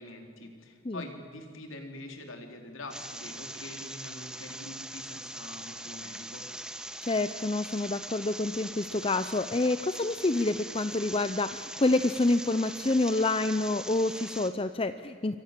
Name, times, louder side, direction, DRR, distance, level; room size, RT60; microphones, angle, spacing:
voice 1, 0.0-6.4, left 2 dB, 70° left, 4 dB, 4.0 m, -44 dB
sound 1, 2.9-14.5, right 1 dB, 5° right, 1.5 m, -42 dB
voice 2, 7.0-15.4, left 2 dB, 25° left, 11 dB, 0.6 m, -28 dB
28.0 x 24.0 x 7.6 m, 2.2 s
head